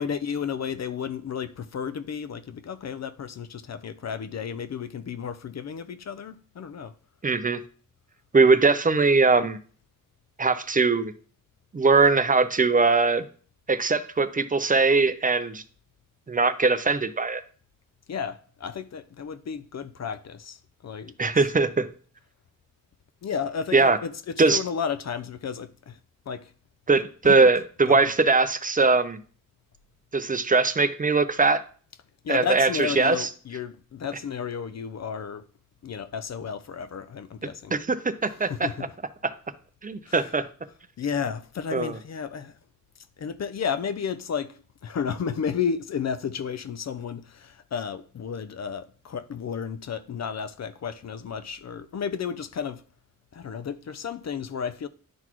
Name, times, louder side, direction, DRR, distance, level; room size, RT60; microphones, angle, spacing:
voice 1, 0.0-6.9 18.1-21.5 23.2-26.0 26.3-26.5 27.2-27.4 27.9-28.1 32.2-35.4 35.8-37.8 38.2-38.9 40.1-40.4 41.0-42.6 43.2-52.8 53.3-54.9, left 7 dB, 55° left, 0.5 m, -32 dB
voice 2, 7.2-7.6 8.3-9.6 10.4-11.1 11.7-13.2 13.7-15.6 16.3-17.4 21.2-21.9 23.7-24.0 24.4-24.6 26.9-29.2 30.1-31.6 32.3-33.3 37.7-38.7 39.8-40.4 41.7-42.0, right 4 dB, 25° right, 0.5 m, -21 dB
11.0 x 4.0 x 3.0 m
wide cardioid pair, 105°, 34 cm